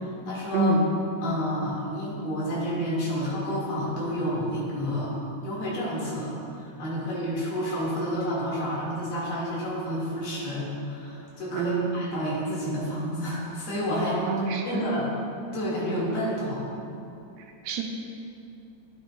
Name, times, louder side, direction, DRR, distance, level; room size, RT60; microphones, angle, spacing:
voice 1, 0.2-0.7 1.2-5.1 5.4-14.2 14.6-15.1 15.5-16.7, equal, 60° left, -7 dB, 3.1 m, -30 dB
voice 2, 11.5-11.9 14.3-14.9 17.6-17.8, right 3 dB, 80° right, 2 dB, 1.9 m, -26 dB
11.5 x 7.7 x 2.4 m, 2.7 s
omnidirectional pair, 3.4 m